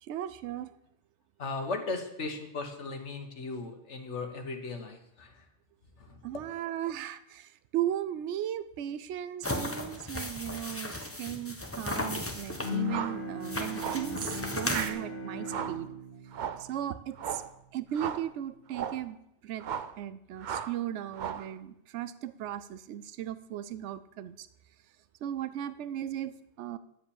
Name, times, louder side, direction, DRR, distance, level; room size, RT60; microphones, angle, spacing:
voice 1, 0.0-0.7 6.2-15.9 16.6-17.4 17.7-19.2 19.4-19.6 20.0-24.5 25.2-26.8, right 11 dB, 85° right, 14 dB, 0.9 m, -36 dB
voice 2, 1.4-5.4 6.0-6.4, left 3 dB, 85° left, 4 dB, 1.6 m, -37 dB
sound 1, 9.4-12.7 13.4-14.9, left 1 dB, 15° left, 1.0 m, -35 dB
Bowed string instrument, 12.6-18.0, left 2 dB, 50° left, 1.9 m, -38 dB
sound 2, 12.8-13.2 13.8-14.1 14.6-15.0 15.5-15.8 16.3-16.7 17.2-17.5 17.9-18.3 18.7-19.0 19.6-20.0 20.4-20.8 21.1-21.5, right 8 dB, 55° right, 0.6 m, -36 dB
10.5 x 7.2 x 7.1 m, 0.80 s
omnidirectional pair, 1.2 m